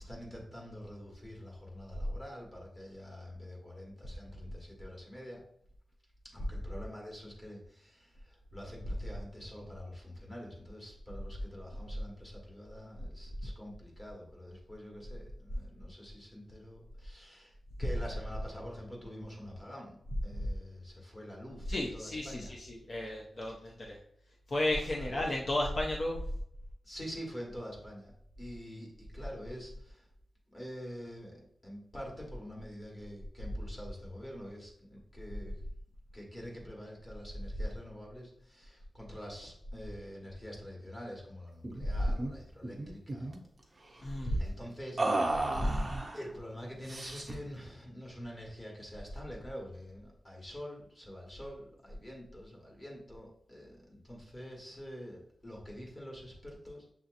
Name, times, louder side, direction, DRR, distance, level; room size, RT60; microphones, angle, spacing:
voice 1, 0.1-5.4 6.2-20.0 20.2-22.5 24.9-25.2 26.8-28.1 28.4-30.1 30.5-35.6 36.1-43.5 44.4-45.8 46.1-56.8, equal, 20° left, -2 dB, 1.3 m, -46 dB
voice 2, 21.7-24.0 24.5-26.2 41.9-42.0 44.0-44.4 45.6-45.7, left 1 dB, 40° left, -2 dB, 0.5 m, -33 dB
sound 1, 41.6-41.8 42.1-42.3 42.6-43.4 45.0-46.2 46.9-47.5, right 2 dB, 25° right, 0.5 m, -33 dB
6.7 x 2.8 x 2.5 m, 0.71 s
wide cardioid pair, 165°, 0 cm